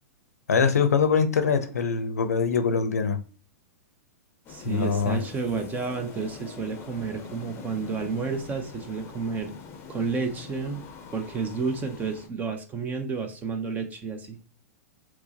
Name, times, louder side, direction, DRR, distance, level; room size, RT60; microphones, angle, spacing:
voice 1, 0.5-3.2 4.6-5.2, left 6 dB, 85° left, 9 dB, 0.5 m, -23 dB
sound 1, 4.4-12.3, left 5 dB, 30° left, 0.6 m, -44 dB
voice 2, 4.5-9.5 9.9-10.8 11.1-14.4, right 4 dB, 20° right, 5 dB, 0.6 m, -31 dB
4.5 x 2.1 x 2.7 m, 0.38 s
hypercardioid pair, 115°, 8 cm